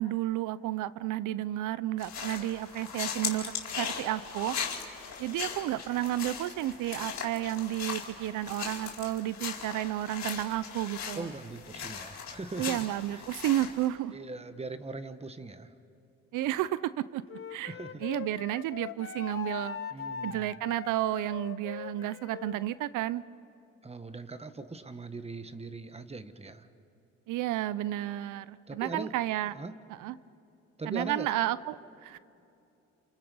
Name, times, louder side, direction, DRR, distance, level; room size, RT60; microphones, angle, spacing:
voice 1, 0.0-4.6 5.2-11.3 12.6-14.1 16.3-17.2 17.5-17.7 18.0-19.8 20.2-23.2 27.3-29.5 30.0-30.2 30.9-32.2, right 14 dB, 85° right, 17 dB, 0.6 m, -32 dB
sound 1, 2.0-13.9, left 7 dB, 65° left, 4.2 m, -39 dB
voice 2, 11.1-12.9 13.1-13.3 14.1-15.7 17.7-18.0 19.9-20.7 23.8-26.7 28.7-29.1 29.5-29.7 30.8-31.3, right 3 dB, 20° right, 10 dB, 1.3 m, -40 dB
Wind instrument woodwind instrument, 17.3-22.6, left 8 dB, 45° left, 0.9 m, -41 dB
28.5 x 28.0 x 5.4 m, 2.8 s
cardioid pair, 90°, 30 cm